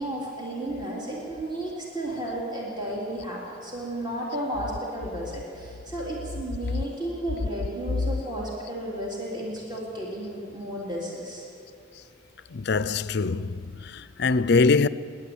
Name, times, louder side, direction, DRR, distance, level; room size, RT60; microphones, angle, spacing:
voice 1, 0.0-11.5, right 1 dB, 25° right, 3.5 m, -33 dB
voice 2, 12.5-14.9, left 4 dB, 55° left, 0.5 m, -23 dB
27.5 x 11.5 x 8.7 m
head